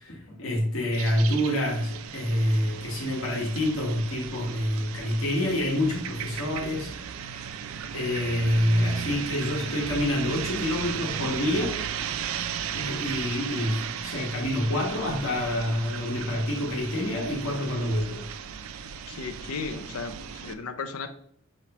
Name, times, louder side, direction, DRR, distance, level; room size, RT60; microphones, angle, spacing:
voice 1, 0.0-6.9 7.9-11.7 12.7-18.3, left 1 dB, 65° left, -1 dB, 1.2 m, -27 dB
sound 1, 0.9-20.5, right 8 dB, 70° right, 0.4 m, -36 dB
voice 2, 19.1-21.1, left 4 dB, 85° left, 8 dB, 0.5 m, -35 dB
5.7 x 3.1 x 2.9 m, 0.66 s
head